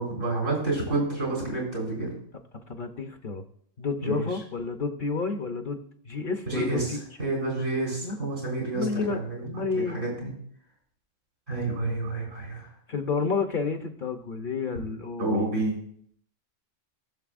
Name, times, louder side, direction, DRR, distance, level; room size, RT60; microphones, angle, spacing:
voice 1, 0.0-2.1 4.0-4.2 6.5-10.3 11.5-12.7 14.7-14.8 15.2-15.8, right 2 dB, 85° right, -2 dB, 4.5 m, -29 dB
voice 2, 2.7-3.4 3.8-7.0 8.0-8.1 8.7-10.0 12.9-15.5, left 4 dB, 45° left, 6 dB, 0.8 m, -30 dB
19.0 x 6.5 x 2.5 m, 0.64 s
omnidirectional pair, 1.3 m